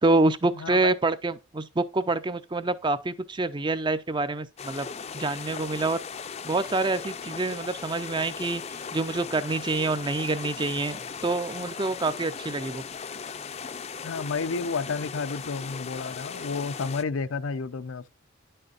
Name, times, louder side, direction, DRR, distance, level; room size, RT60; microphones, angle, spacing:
voice 1, 0.0-4.9 5.1-6.0 6.4-11.0 11.2-12.8, right 3 dB, 20° right, 0.5 m, -26 dB
voice 2, 0.6-0.9 14.0-18.1, left 4 dB, 80° left, 0.6 m, -31 dB
sound 1, 4.6-17.0, left 6 dB, 30° left, 0.5 m, -38 dB
9.7 x 6.6 x 2.4 m
head